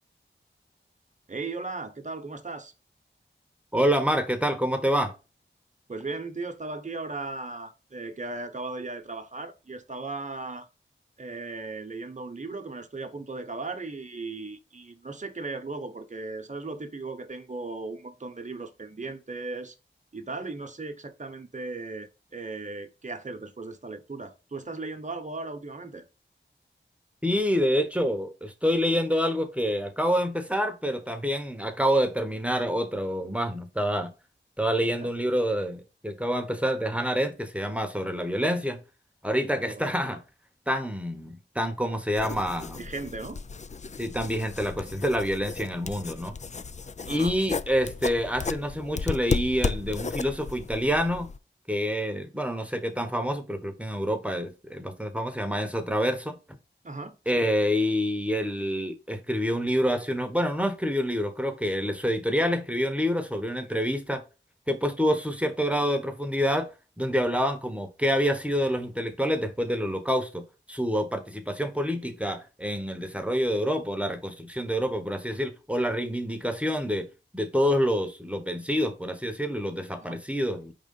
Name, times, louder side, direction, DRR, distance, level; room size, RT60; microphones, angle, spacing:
voice 1, 1.3-2.7 5.9-10.7 11.2-19.7 20.1-26.0 35.0-35.1 39.7-39.9 42.8-43.4 47.0-47.3 56.8-57.5 67.3-67.5 73.0-73.1 80.0-80.2, right 3 dB, 40° right, 1.0 m, -37 dB
voice 2, 3.7-5.1 27.2-34.1 34.6-38.8 39.2-40.2 40.7-42.8 44.0-46.4 47.1-51.3 51.7-56.4 57.3-64.2 64.7-66.7 67.0-77.1 77.3-80.7, equal, 5° right, 1.0 m, -27 dB
sound 1, 42.2-51.4, left 5 dB, 35° left, 0.4 m, -34 dB
4.8 x 3.7 x 5.3 m
wide cardioid pair, 60°, 20 cm